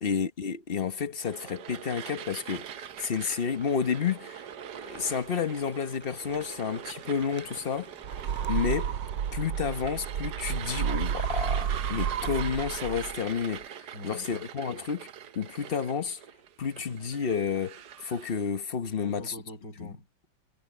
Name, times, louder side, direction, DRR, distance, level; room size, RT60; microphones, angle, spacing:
voice 1, 0.0-4.4 4.7-7.9 8.5-9.0 9.3-13.7 14.0-15.1 15.3-16.2 16.6-19.3 19.8-19.9, left 6 dB, 35° left, 1.2 m, -31 dB
sound 1, 1.2-18.5, right 9 dB, 70° right, 1.5 m, -43 dB
sound 2, 2.3-10.3, equal, 5° left, 5.8 m, -55 dB
sound 3, 8.0-13.4, right 9 dB, 85° right, 1.6 m, -31 dB
voice 2, 13.9-14.5 19.0-20.3, left 1 dB, 70° left, 7.8 m, -44 dB
omnidirectional pair, 1.9 m